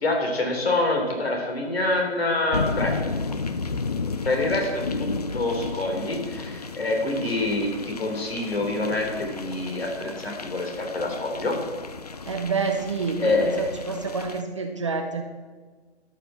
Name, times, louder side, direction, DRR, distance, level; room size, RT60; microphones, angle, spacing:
voice 1, 0.0-2.9 4.3-5.1 5.3-11.6 13.2-13.7, left 2 dB, 55° left, 2 dB, 3.3 m, -26 dB
sound 1, 2.5-14.4, left 4 dB, 35° left, 0.4 m, -33 dB
voice 2, 12.3-15.2, right 4 dB, 25° right, 4 dB, 0.6 m, -28 dB
13.0 x 6.0 x 7.4 m, 1.4 s
figure-of-eight pair, 150°, 35 cm